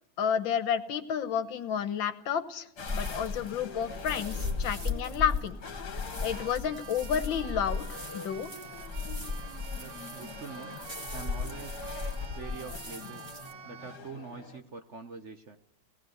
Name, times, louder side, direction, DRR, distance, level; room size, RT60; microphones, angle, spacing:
voice 1, 0.2-5.6 5.9-8.5, left 8 dB, 75° left, 11 dB, 1.9 m, -31 dB
sound 1, 2.8-14.6, left 4 dB, 55° left, 2.2 m, -45 dB
sound 2, 2.9-13.5, left 4 dB, 20° right, 2.5 m, -37 dB
Keyboard (musical), 6.3-14.0, right 10 dB, 70° right, 1.6 m, -49 dB
voice 2, 9.8-10.8 11.1-11.9 12.3-15.6, right 5 dB, 45° right, 7 dB, 1.0 m, -45 dB
18.5 x 17.5 x 8.0 m, 0.74 s
omnidirectional pair, 2.1 m